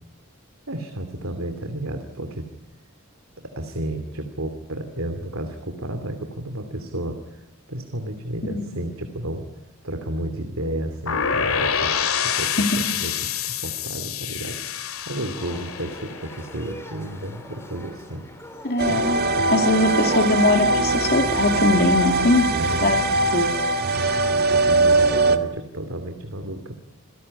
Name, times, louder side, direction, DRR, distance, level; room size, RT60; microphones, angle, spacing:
voice 1, 0.7-2.5 3.4-9.5 9.8-11.9 12.2-14.8 15.1-18.3 18.9-19.0 19.4-19.5 22.5-23.5 23.8-26.8, right 1 dB, 70° right, 7 dB, 2.8 m, -32 dB
sound 1, 11.1-16.9, left 7 dB, 75° left, 2.3 m, -27 dB
sound 2, 15.3-20.4, left 1 dB, 10° left, 2.8 m, -41 dB
voice 2, 18.6-19.2 19.5-22.5 22.8-23.0 23.3-23.5 24.7-24.8, left 2 dB, 45° left, 6 dB, 2.6 m, -21 dB
sound 3, 18.8-25.4, right 2 dB, 45° right, 1.8 m, -21 dB
28.5 x 17.5 x 9.8 m, 0.85 s
head